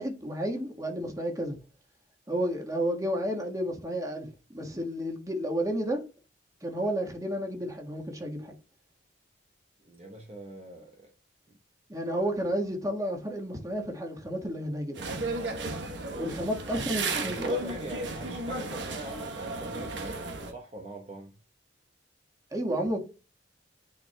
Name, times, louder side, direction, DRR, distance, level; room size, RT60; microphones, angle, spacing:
voice 1, 0.0-1.6 2.3-6.0 6.6-8.5 11.9-15.0 16.1-17.8 22.5-23.0, equal, 20° right, 1.5 m, -31 dB
voice 2, 9.8-11.1 11.5-11.6 17.2-21.3, right 2 dB, 35° right, 0.9 m, -43 dB
sound 1, 15.0-20.5, right 2 dB, 65° right, 1.1 m, -34 dB
9.4 x 4.5 x 2.2 m
head